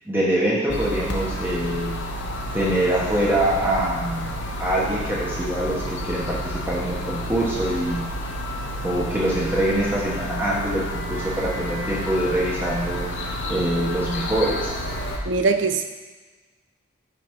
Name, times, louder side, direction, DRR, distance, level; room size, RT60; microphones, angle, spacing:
voice 1, 0.0-2.0 2.5-5.8 6.1-8.1 8.8-14.7, right 1 dB, 10° right, -6 dB, 1.2 m, -24 dB
sound 1, 0.7-15.2, equal, 90° left, 0.8 m, -30 dB
voice 2, 15.3-15.8, right 4 dB, 80° right, 7 dB, 0.5 m, -21 dB
5.9 x 5.4 x 4.7 m, 1.3 s
head